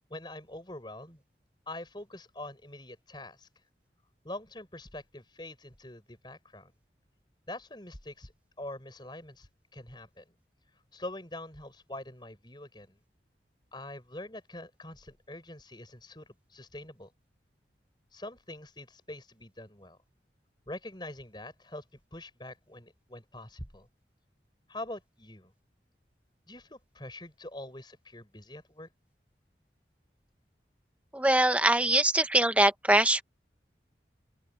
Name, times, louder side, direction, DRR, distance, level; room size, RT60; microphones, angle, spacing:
voice 1, 0.1-1.2 1.7-3.5 4.2-6.7 7.5-8.3 8.6-10.2 10.9-13.0 13.7-17.1 18.1-20.0 20.7-21.8 22.1-23.9 24.7-25.5 26.5-28.9, left 1 dB, 25° left, 5.9 m, -44 dB
voice 2, 31.1-33.2, right 1 dB, 10° right, 1.2 m, -23 dB
open air
head